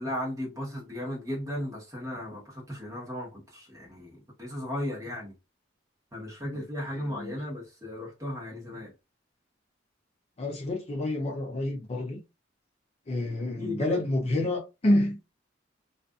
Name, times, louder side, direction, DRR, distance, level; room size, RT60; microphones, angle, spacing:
voice 1, 0.0-5.3 6.1-8.9 13.6-14.3, left 1 dB, 20° right, 1.1 m, -36 dB
voice 2, 6.9-7.4 10.4-12.2 13.1-15.2, left 1 dB, 35° left, 0.5 m, -28 dB
2.5 x 2.4 x 2.3 m
head